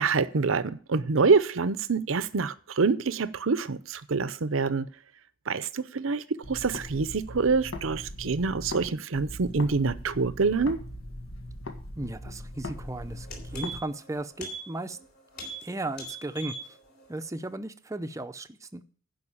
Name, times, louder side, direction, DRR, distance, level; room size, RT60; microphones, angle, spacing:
voice 1, 0.0-4.9 5.5-10.8, right 4 dB, 70° right, 0.7 m, -26 dB
sound 1, 6.4-8.9 9.1-13.8, left 1 dB, 75° left, 1.6 m, -40 dB
voice 2, 12.0-15.0 15.6-16.8 17.1-18.8, right 2 dB, 15° right, 0.6 m, -36 dB
sound 2, 12.7-12.8 13.1-14.0 14.4-14.6 14.9-15.0 15.3-15.6 15.9-16.6 17.0-17.1, right 2 dB, 50° left, 3.5 m, -39 dB
11.0 x 5.5 x 8.7 m
head